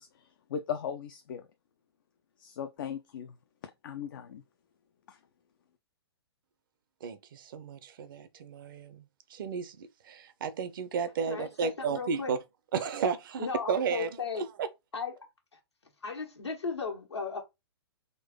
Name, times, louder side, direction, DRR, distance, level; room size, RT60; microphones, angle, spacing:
voice 1, 0.0-1.5 2.4-3.3 3.8-4.4 5.1-5.2, left 8 dB, 50° left, 0.5 m, -38 dB
voice 2, 7.0-9.0 9.3-12.4 12.7-14.1 14.6-14.7, right 6 dB, 50° right, 0.7 m, -33 dB
voice 3, 11.3-12.3 13.4-14.4 14.9-15.2 16.0-17.4, left 5 dB, 80° left, 1.4 m, -35 dB
3.8 x 2.6 x 3.7 m
figure-of-eight pair, 115°, 14 cm